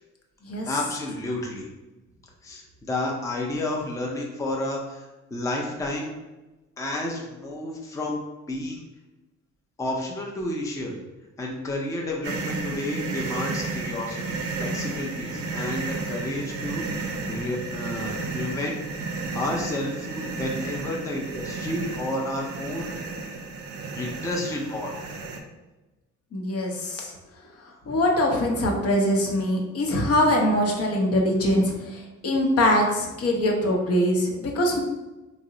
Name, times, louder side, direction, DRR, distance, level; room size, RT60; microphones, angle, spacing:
voice 1, 0.7-1.7 2.4-6.1 6.8-8.2 8.5-8.8 9.8-10.9 11.4-18.8 19.3-22.9 23.9-25.0, left 1 dB, 10° left, -1 dB, 0.5 m, -31 dB
sound 1, 12.2-25.4, right 3 dB, 50° right, 0.5 m, -32 dB
voice 2, 26.3-27.1 27.9-34.8, left 1 dB, 50° left, 0 dB, 0.7 m, -23 dB
2.7 x 2.0 x 3.8 m, 1.1 s
cardioid pair, 90°, 30 cm